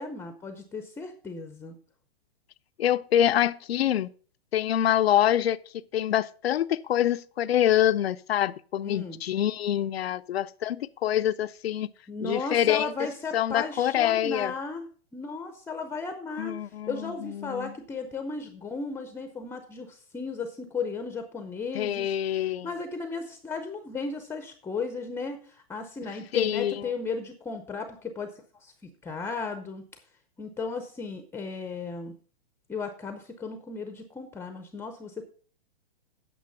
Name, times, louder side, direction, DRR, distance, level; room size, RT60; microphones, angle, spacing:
voice 1, 0.0-1.7 8.8-9.2 12.1-14.8 15.1-16.6 16.9-28.3 28.6-29.8 30.4-32.1 32.7-35.3, left 4 dB, 10° left, 0.6 m, -35 dB
voice 2, 2.8-4.1 4.5-5.6 5.9-11.9 12.2-13.1 13.3-14.5 16.4-17.7 21.7-22.7 26.3-26.8, left 11 dB, 80° left, 0.6 m, -25 dB
9.3 x 6.2 x 5.3 m
hypercardioid pair, 135°, 31 cm